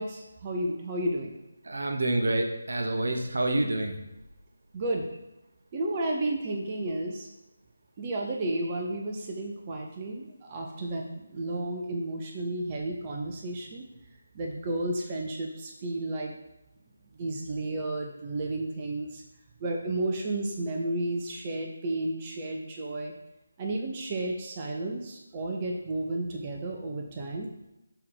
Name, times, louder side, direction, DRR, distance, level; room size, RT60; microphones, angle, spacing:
voice 1, 0.0-1.3 4.7-5.1 5.7-7.3 8.0-13.9 14.3-16.3 17.2-19.2 19.6-23.1 23.6-27.5, right 1 dB, 25° right, 1 dB, 0.7 m, -32 dB
voice 2, 1.6-3.9, right 1 dB, 70° right, 4 dB, 1.0 m, -27 dB
6.8 x 3.7 x 4.7 m, 0.94 s
figure-of-eight pair, 160°, 0 cm